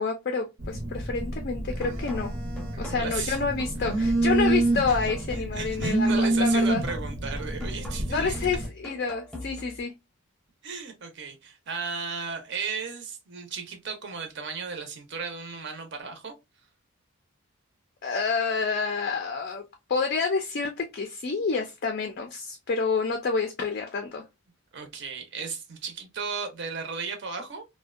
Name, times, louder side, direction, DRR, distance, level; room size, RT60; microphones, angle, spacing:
voice 1, 0.0-2.3 2.8-6.8 8.1-9.9 18.0-19.6 19.9-24.2, left 4 dB, 45° left, 0.3 m, -28 dB
Telephone, 0.6-8.7, right 2 dB, 85° right, 0.8 m, -28 dB
sound 1, 1.8-9.8, left 2 dB, ahead, 0.7 m, -43 dB
voice 2, 2.9-3.4 4.9-5.0 5.5-8.3 10.6-16.3 24.7-27.6, right 5 dB, 50° right, 0.6 m, -35 dB
2.5 x 2.1 x 2.3 m
head